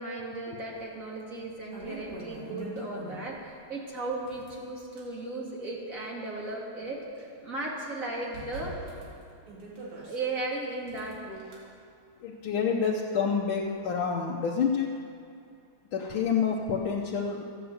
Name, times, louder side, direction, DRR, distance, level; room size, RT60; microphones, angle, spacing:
voice 1, 0.0-8.8 9.9-11.4, right 2 dB, 40° right, -3 dB, 2.6 m, -36 dB
sound 1, 0.8-0.9 1.4-3.4 4.1-5.1 5.8-7.2 7.5-7.6 8.3-10.2 10.8-11.6, right 2 dB, 90° right, 3.6 m, -43 dB
voice 2, 12.2-14.9 15.9-17.5, left 6 dB, 70° left, -1 dB, 1.7 m, -28 dB
14.0 x 9.4 x 8.0 m, 2.4 s
omnidirectional pair, 2.4 m